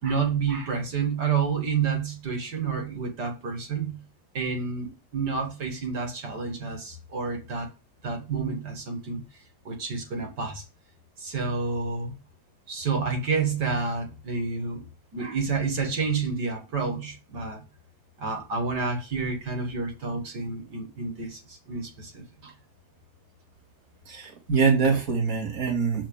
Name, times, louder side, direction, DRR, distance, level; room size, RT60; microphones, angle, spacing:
voice 1, 0.0-4.0 4.3-7.7 8.0-9.2 9.6-10.6 11.2-12.2 12.7-14.8 15.1-17.7 18.2-22.5, right 5 dB, 85° right, 2.8 m, -29 dB
voice 2, 24.1-26.1, right 5 dB, 55° right, 2.6 m, -24 dB
7.3 x 5.1 x 7.1 m
omnidirectional pair, 1.8 m